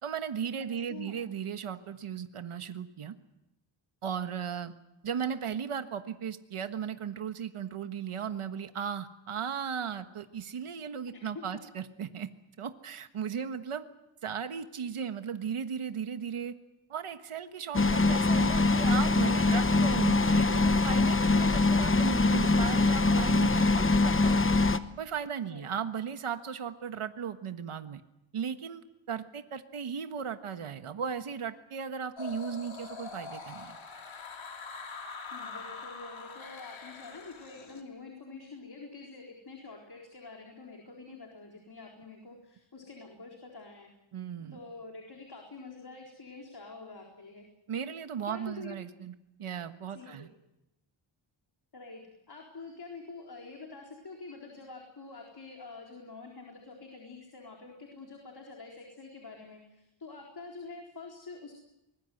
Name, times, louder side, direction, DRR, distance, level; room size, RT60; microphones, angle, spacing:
voice 1, 0.0-3.1 4.0-4.7 5.0-12.3 12.6-13.8 14.2-16.5 16.9-24.4 25.0-28.0 28.3-33.8 44.1-44.6 47.7-49.1 49.4-50.3, right 7 dB, 85° right, 8 dB, 1.5 m, -36 dB
voice 2, 0.6-1.2 11.1-11.2 25.4-25.7 35.3-43.9 44.5-47.5 48.3-48.8 49.9-50.3 51.7-61.5, left 3 dB, 50° left, 1 dB, 4.2 m, -47 dB
sound 1, 17.7-24.8, left 3 dB, 25° left, 1.0 m, -24 dB
sound 2, 32.2-37.8, left 5 dB, 65° left, 3.1 m, -43 dB
24.0 x 21.5 x 7.9 m, 0.90 s
wide cardioid pair, 110°, 50 cm